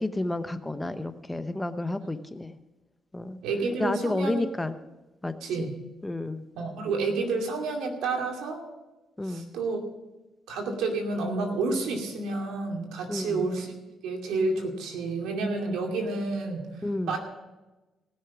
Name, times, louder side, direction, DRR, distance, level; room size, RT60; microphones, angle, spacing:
voice 1, 0.0-2.5 3.1-3.4 3.8-4.8 5.2-5.7 6.0-6.4 9.2-9.5 13.1-13.5 16.8-17.2, left 2 dB, 15° left, 11 dB, 0.7 m, -31 dB
voice 2, 3.4-4.4 5.4-5.7 6.6-8.6 9.3-9.8 10.5-13.7 14.0-16.7 17.1-17.2, right 3 dB, 90° right, 2 dB, 2.3 m, -29 dB
18.5 x 6.4 x 6.0 m, 1.1 s
cardioid pair, 90°, 0 cm